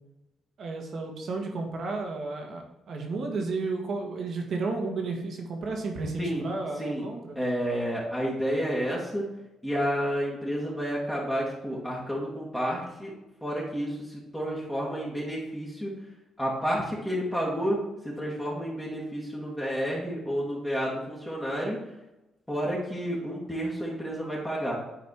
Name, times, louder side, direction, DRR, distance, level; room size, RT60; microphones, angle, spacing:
voice 1, 0.6-7.4, right 3 dB, 60° right, 2 dB, 1.8 m, -32 dB
voice 2, 7.4-9.2 9.6-13.1 13.4-15.9 16.4-21.8 22.5-24.8, equal, 10° left, -5 dB, 2.2 m, -30 dB
9.3 x 4.2 x 4.7 m, 0.98 s
cardioid pair, 90°, 0 cm